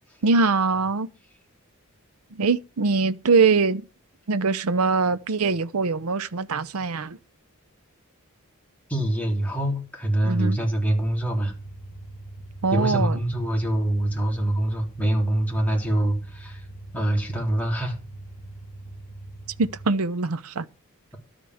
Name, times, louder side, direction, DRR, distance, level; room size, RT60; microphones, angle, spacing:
voice 1, 0.2-1.1 2.3-3.9 4.3-7.2 10.2-10.6 12.6-13.2 19.6-20.7, right 4 dB, 70° right, 0.7 m, -22 dB
voice 2, 8.9-11.5 12.7-16.7 16.9-18.0, right 1 dB, 5° left, 3.6 m, -24 dB
sound 1, 10.8-19.9, right 2 dB, 75° left, 1.9 m, -42 dB
12.5 x 5.2 x 7.8 m
head